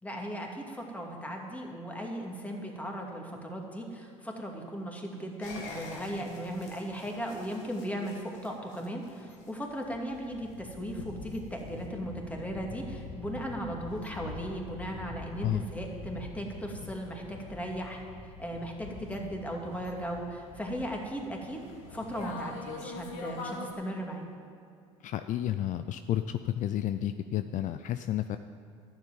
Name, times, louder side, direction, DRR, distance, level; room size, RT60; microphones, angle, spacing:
voice 1, 0.0-18.0 18.4-21.6 21.9-24.2, equal, 10° left, 1 dB, 2.5 m, -37 dB
sound 1, 5.4-23.7, left 3 dB, 85° left, 1.9 m, -45 dB
voice 2, 25.0-28.4, left 12 dB, 55° left, 10 dB, 0.5 m, -31 dB
12.0 x 7.3 x 9.2 m, 2.4 s
hypercardioid pair, 75°, 16 cm